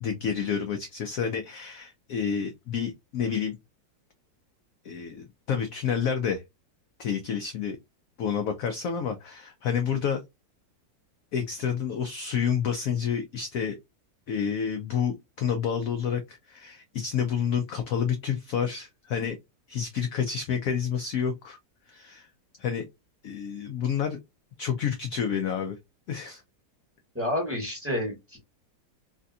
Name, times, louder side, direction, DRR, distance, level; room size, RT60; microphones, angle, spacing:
voice 1, 0.0-3.6 4.8-6.4 7.0-7.8 8.2-10.2 11.3-13.8 14.3-19.4 19.7-21.6 21.9-22.3 22.6-22.8 23.2-24.2 24.6-25.8 26.1-26.4, left 7 dB, 75° left, 0.8 m, -29 dB
voice 2, 27.1-28.4, left 1 dB, 10° right, 1.2 m, -29 dB
3.3 x 2.7 x 2.3 m
omnidirectional pair, 2.0 m